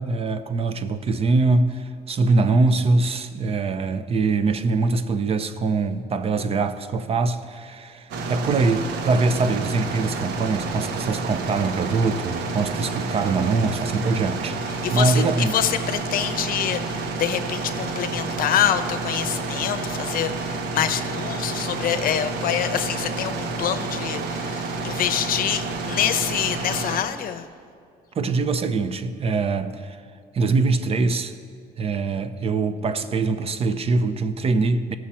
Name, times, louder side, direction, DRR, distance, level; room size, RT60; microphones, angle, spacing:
voice 1, 0.0-14.6 14.9-15.5 28.1-30.0 30.3-31.3 31.8-35.0, right 3 dB, 35° right, 0.6 m, -23 dB
sound 1, 8.1-27.0, right 3 dB, 85° right, 0.9 m, -29 dB
voice 2, 14.7-27.5, left 10 dB, 55° left, 0.7 m, -26 dB
17.0 x 6.2 x 4.3 m
cardioid pair, 110°, 17 cm